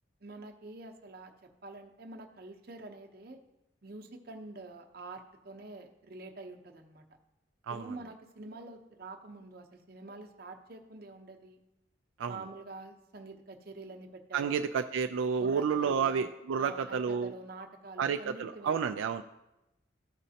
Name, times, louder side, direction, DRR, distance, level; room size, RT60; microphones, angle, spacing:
voice 1, 0.2-1.3 1.6-3.4 3.8-7.0 7.7-11.6 12.3-14.8 15.4-16.2 16.6-18.8, right 2 dB, 50° right, 3 dB, 0.8 m, -46 dB
voice 2, 14.3-17.3 18.0-19.2, right 6 dB, 80° right, 6 dB, 0.3 m, -30 dB
14.5 x 5.1 x 2.8 m, 0.93 s
head